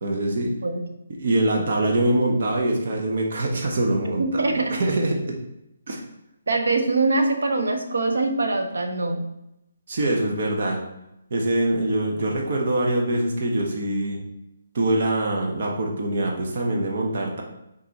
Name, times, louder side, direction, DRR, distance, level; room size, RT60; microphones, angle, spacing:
voice 1, 0.0-0.6 1.2-5.4 5.9-6.0 9.9-10.8 11.3-14.2 14.7-17.4, right 1 dB, 50° right, 0 dB, 1.3 m, -24 dB
voice 2, 4.2-4.8 6.5-9.2, right 3 dB, 90° right, 4 dB, 1.2 m, -23 dB
6.2 x 4.7 x 4.3 m, 0.86 s
hypercardioid pair, 170°, 0 cm